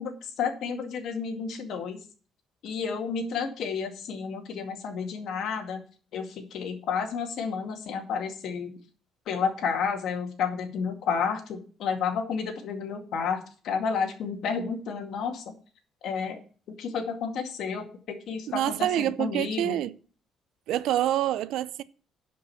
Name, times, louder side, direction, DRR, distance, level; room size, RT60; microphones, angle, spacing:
voice 1, 0.0-2.0 2.6-5.8 6.1-8.7 9.3-13.4 13.6-15.5 16.0-16.4 16.8-19.8, left 6 dB, 55° left, 2.1 m, -31 dB
voice 2, 18.5-19.9 20.7-21.8, right 12 dB, 70° right, 0.6 m, -27 dB
11.0 x 5.3 x 7.1 m
cardioid pair, 170°, 0 cm